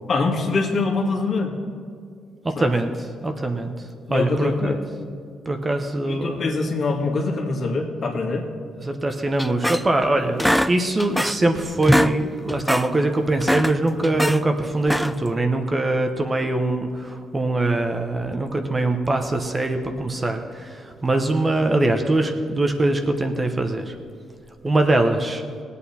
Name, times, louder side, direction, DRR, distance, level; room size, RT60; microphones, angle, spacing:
voice 1, 0.1-1.5 2.6-2.7 4.1-4.8 6.1-8.5, left 3 dB, 55° left, 1 dB, 2.0 m, -24 dB
voice 2, 2.6-3.7 4.1-4.8 5.5-6.5 8.8-10.4 10.7-23.9 24.6-25.4, right 2 dB, 25° right, 5 dB, 1.0 m, -22 dB
sound 1, 9.4-10.1 10.4-11.5 11.8-12.2 12.5-12.9 13.3-14.4 14.8-15.3, equal, ahead, 0.4 m, -22 dB
18.0 x 8.4 x 4.3 m, 2.3 s
cardioid pair, 90°, 0 cm